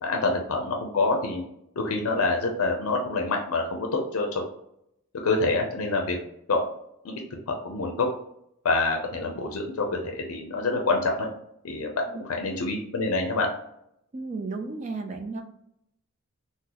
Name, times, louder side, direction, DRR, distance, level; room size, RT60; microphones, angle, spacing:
voice 1, 0.0-1.4 1.8-4.4 5.2-6.2 6.5-6.6 7.0-7.2 7.5-8.1 8.6-11.3 11.6-11.9 12.2-13.5, left 3 dB, 75° left, 2 dB, 0.5 m, -26 dB
voice 2, 14.1-15.4, right 3 dB, 35° right, 5 dB, 0.4 m, -33 dB
3.8 x 2.1 x 2.8 m, 0.77 s
head